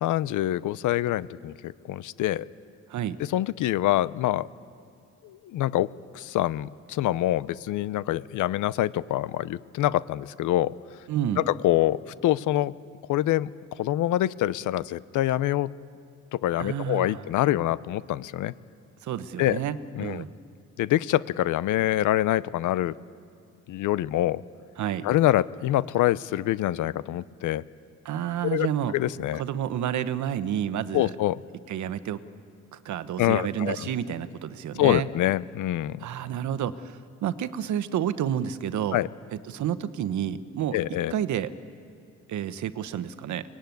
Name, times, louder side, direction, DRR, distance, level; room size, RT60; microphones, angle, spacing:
voice 1, 0.0-2.5 3.3-4.5 5.2-5.9 6.1-10.7 11.4-12.7 13.1-13.5 13.8-15.7 16.3-18.5 19.4-19.6 19.9-20.2 20.8-22.9 23.7-24.4 25.0-27.6 28.4-28.7 28.9-29.4 30.9-31.4 33.2-33.8 34.8-36.0 38.9-39.1 40.7-41.1, left 14 dB, 80° left, 18 dB, 0.7 m, -25 dB
voice 2, 11.1-11.4 16.6-17.2 19.0-20.3 24.8-25.0 28.0-28.9 29.3-31.1 31.7-32.2 32.7-35.1 36.0-39.0 39.5-40.8 41.1-41.5 42.3-43.4, right 10 dB, 70° right, 13 dB, 1.1 m, -30 dB
24.0 x 19.0 x 9.4 m, 2.4 s
cardioid pair, 90°, 30 cm